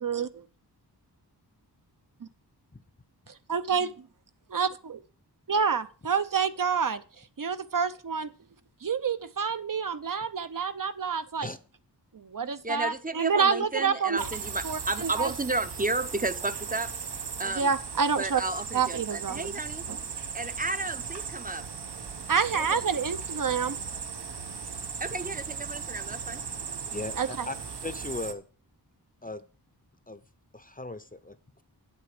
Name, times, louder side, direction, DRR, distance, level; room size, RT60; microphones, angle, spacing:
voice 1, 0.0-0.4 2.2-2.3 3.3-3.9 4.5-5.0 5.5-7.0 7.4-8.3 8.8-11.5 12.1-14.3 14.6-15.3 17.4-18.4 18.7-19.5 19.9-20.0 22.3-23.8 27.2-27.5, right 6 dB, 50° right, 11 dB, 0.8 m, -28 dB
voice 2, 12.6-16.9 17.4-17.7 18.2-19.8 20.3-21.6 22.5-22.6 25.0-26.4, right 2 dB, 20° right, 13 dB, 0.7 m, -32 dB
sound 1, 14.2-28.3, right 6 dB, 75° right, 1.1 m, -37 dB
voice 3, 26.9-27.6 27.8-28.5 29.2-29.5 30.1-30.2 30.5-31.6, left 2 dB, 20° left, 13 dB, 0.7 m, -37 dB
8.8 x 8.3 x 5.0 m, 0.38 s
wide cardioid pair, 95°, 40 cm